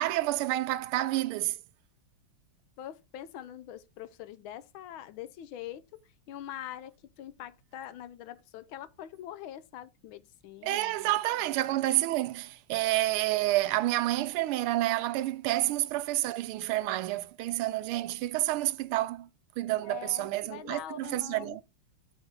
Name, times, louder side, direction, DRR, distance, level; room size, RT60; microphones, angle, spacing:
voice 1, 0.0-1.6 10.6-19.3 19.6-21.6, right 16 dB, 85° right, 1.5 m, -29 dB
voice 2, 2.8-6.0 6.3-11.1 11.4-11.5 15.6-15.8 19.8-21.6, left 11 dB, 75° left, 1.4 m, -44 dB
7.2 x 3.9 x 6.1 m
omnidirectional pair, 2.4 m